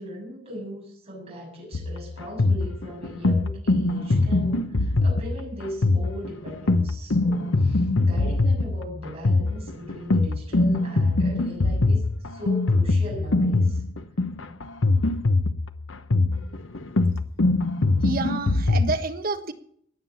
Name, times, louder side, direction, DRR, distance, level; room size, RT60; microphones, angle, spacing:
voice 1, 0.0-13.8, equal, 30° right, -3 dB, 7.1 m, -38 dB
sound 1, 1.7-19.0, left 2 dB, 85° left, 1.0 m, -22 dB
voice 2, 18.0-19.5, right 3 dB, 50° right, 7 dB, 1.4 m, -28 dB
19.0 x 7.6 x 7.2 m, 0.64 s
head